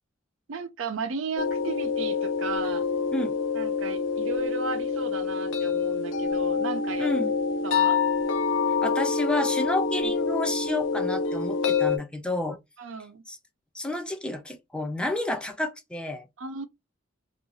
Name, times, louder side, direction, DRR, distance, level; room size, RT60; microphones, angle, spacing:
voice 1, 0.5-2.9 3.5-7.1 7.6-8.0 10.0-10.1 12.8-13.2 16.4-16.7, right 4 dB, 85° right, 0.5 m, -35 dB
sound 1, 1.4-12.0, left 5 dB, 70° left, 0.5 m, -26 dB
voice 2, 7.0-7.3 8.8-12.6 13.3-13.4 13.7-16.3, left 2 dB, 5° left, 0.4 m, -30 dB
2.5 x 2.3 x 3.0 m
head